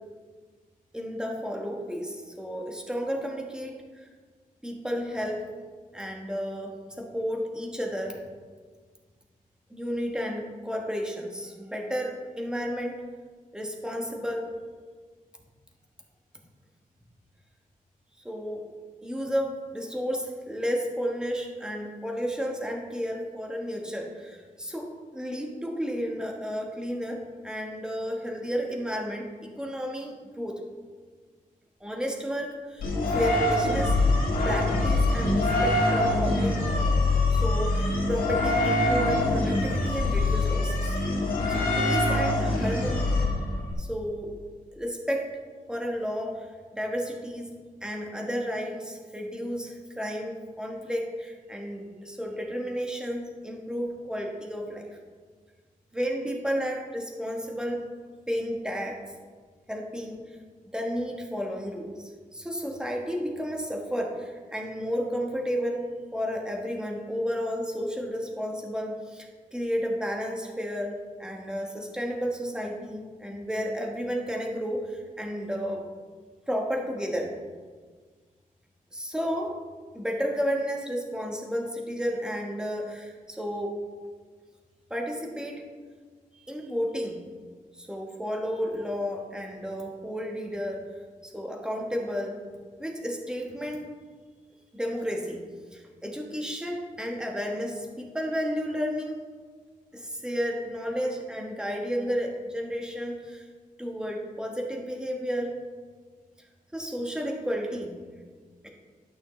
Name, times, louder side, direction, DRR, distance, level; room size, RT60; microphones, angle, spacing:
voice 1, 0.9-4.1 4.6-5.4 5.9-8.2 9.7-13.0 13.5-14.6 18.2-18.6 19.0-30.6 31.8-34.0 34.4-36.6 37.3-41.0 41.5-43.1 43.5-44.4 44.8-45.3 45.7-46.5 46.7-55.0 55.9-57.9 58.3-59.0 59.7-60.2 60.7-75.8 76.5-77.3 78.9-79.6 79.9-83.8 84.9-85.6 86.3-87.2 87.7-90.8 91.2-92.4 92.8-93.9 94.7-95.4 95.7-99.2 99.9-103.4 103.8-105.6 106.7-108.0 108.6-108.7, equal, 5° right, 0 dB, 1.2 m, -32 dB
sound 1, 32.8-43.7, left 2 dB, 85° left, 1.7 m, -24 dB
11.5 x 6.2 x 3.2 m, 1.5 s
wide cardioid pair, 130°, 15 cm